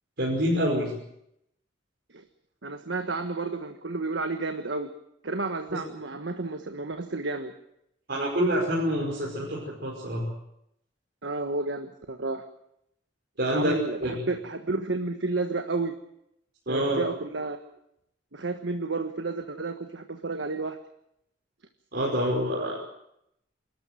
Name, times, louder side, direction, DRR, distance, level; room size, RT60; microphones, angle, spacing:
voice 1, 0.2-0.9 5.7-5.8 8.1-10.2 13.4-14.3 16.7-17.1 21.9-22.8, equal, 60° right, -4 dB, 5.5 m, -27 dB
voice 2, 2.6-4.9 5.2-7.5 11.2-12.4 13.5-15.9 16.7-17.6 18.3-20.8, right 3 dB, 85° right, 7 dB, 1.4 m, -31 dB
28.5 x 13.5 x 9.1 m, 0.79 s
head